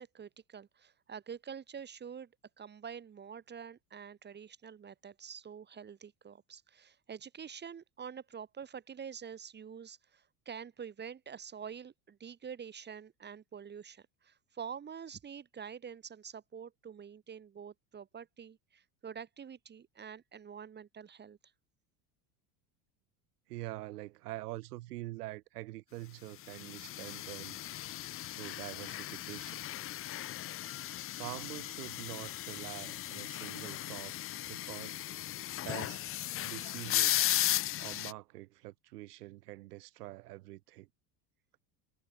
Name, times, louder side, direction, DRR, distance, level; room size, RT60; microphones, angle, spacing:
voice 1, 0.0-2.3 2.6-21.4, right 7 dB, 25° right, 0.9 m, -47 dB
voice 2, 23.5-27.6 28.3-29.6 31.1-34.2 34.5-35.0 35.6-36.0 36.4-37.3 37.8-40.9, right 18 dB, 90° right, 1.9 m, -45 dB
sound 1, 26.5-38.1, left 14 dB, 30° left, 0.5 m, -36 dB
supercardioid pair, 105°, 45 cm